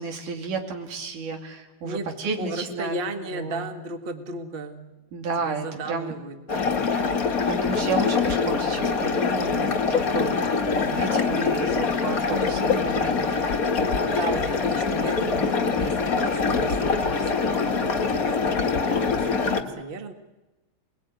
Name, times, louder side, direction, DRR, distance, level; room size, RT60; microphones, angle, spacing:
voice 1, 0.0-3.0 3.3-3.7 5.1-6.1 7.4-10.3 10.8-13.6, right 4 dB, 85° right, 3 dB, 4.2 m, -32 dB
voice 2, 2.4-4.9 5.4-6.7 10.9-11.7 14.1-20.1, right 3 dB, 25° right, 6 dB, 1.2 m, -35 dB
sound 1, 6.5-19.6, left 5 dB, 35° left, 1.5 m, -24 dB
28.0 x 20.5 x 9.2 m, 1.1 s
omnidirectional pair, 3.5 m